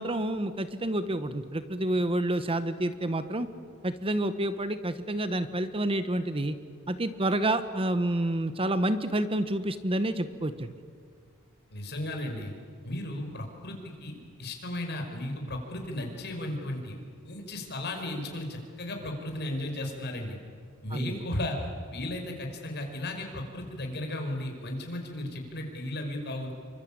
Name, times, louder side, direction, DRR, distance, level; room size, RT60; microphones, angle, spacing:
voice 1, 0.0-3.5 3.8-6.5 6.9-10.7 20.9-21.1, right 1 dB, 25° right, 11 dB, 1.0 m, -29 dB
voice 2, 11.7-12.5 12.8-17.0 17.2-20.4 20.8-21.6 21.9-26.5, left 1 dB, 50° left, 3 dB, 5.5 m, -35 dB
28.0 x 24.5 x 8.8 m, 2.1 s
head